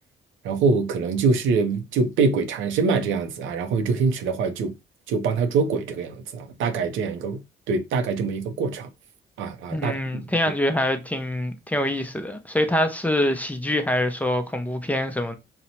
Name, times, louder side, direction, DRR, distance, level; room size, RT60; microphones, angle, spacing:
voice 1, 0.4-4.8 5.1-7.4 7.7-8.9 9.4-10.2, right 4 dB, 85° right, 0.5 m, -24 dB
voice 2, 9.7-15.3, left 1 dB, 10° left, 0.4 m, -25 dB
2.8 x 2.1 x 2.8 m
cardioid pair, 90°, 20 cm